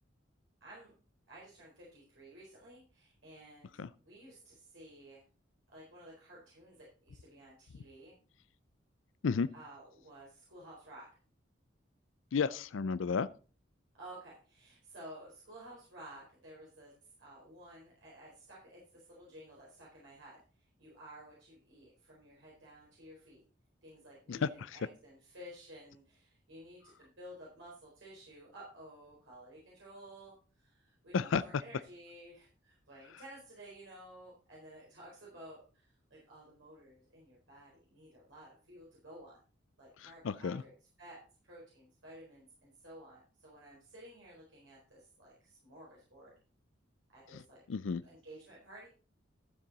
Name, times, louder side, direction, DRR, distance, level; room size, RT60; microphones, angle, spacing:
voice 1, 0.6-0.9 1.3-3.7 4.0-5.2 5.7-8.1 9.5-11.1 13.9-16.9 17.2-20.4 20.8-23.4 23.8-39.4 39.8-46.3 47.1-47.6 48.0-48.9, right 1 dB, 75° right, -5 dB, 4.2 m, -53 dB
voice 2, 12.3-13.3 24.3-24.8 31.1-31.6 40.0-40.6 47.3-47.4 47.7-48.0, left 5 dB, 75° left, 17 dB, 0.4 m, -33 dB
13.0 x 7.5 x 4.0 m, 0.37 s
head